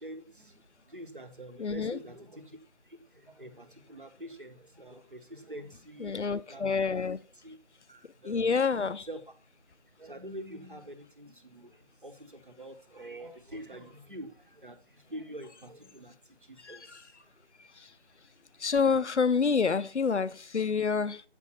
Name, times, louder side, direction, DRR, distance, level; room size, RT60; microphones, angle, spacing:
voice 1, 0.0-2.6 2.8-7.0 7.4-7.6 7.9-9.2 10.0-17.3 19.5-19.6, right 1 dB, 50° right, 1.1 m, -46 dB
voice 2, 1.6-2.0 6.0-7.2 8.2-9.1 16.6-17.0 17.8-17.9 18.6-21.2, left 5 dB, 90° left, 0.6 m, -28 dB
7.5 x 5.4 x 4.0 m
figure-of-eight pair, 175°, 34 cm